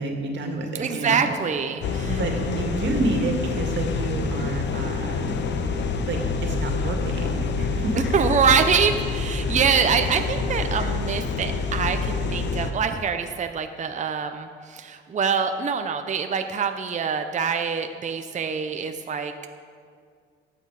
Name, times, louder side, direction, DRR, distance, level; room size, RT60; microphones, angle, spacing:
voice 1, 0.0-1.4 2.1-5.4 6.1-8.1 9.4-9.6, right 2 dB, 65° right, 3 dB, 2.0 m, -29 dB
voice 2, 0.8-2.2 8.1-19.5, right 6 dB, 40° right, 7 dB, 0.7 m, -25 dB
sound 1, 1.8-12.7, left 4 dB, 60° left, 1.1 m, -27 dB
15.0 x 8.9 x 4.9 m, 2.2 s
cardioid pair, 90°, 20 cm